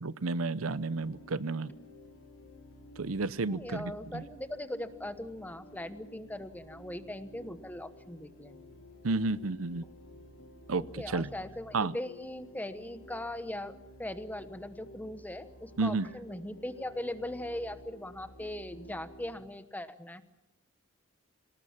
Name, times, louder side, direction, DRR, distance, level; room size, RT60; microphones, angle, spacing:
voice 1, 0.0-1.7 3.0-4.2 9.0-9.9 10.7-11.3 11.7-11.9 15.8-16.1, right 3 dB, 85° right, 17 dB, 0.7 m, -31 dB
sound 1, 0.6-19.4, equal, 75° left, 5.3 m, -53 dB
voice 2, 3.5-8.6 10.8-20.2, left 1 dB, 10° left, 11 dB, 1.1 m, -40 dB
26.5 x 19.0 x 7.3 m, 0.88 s
head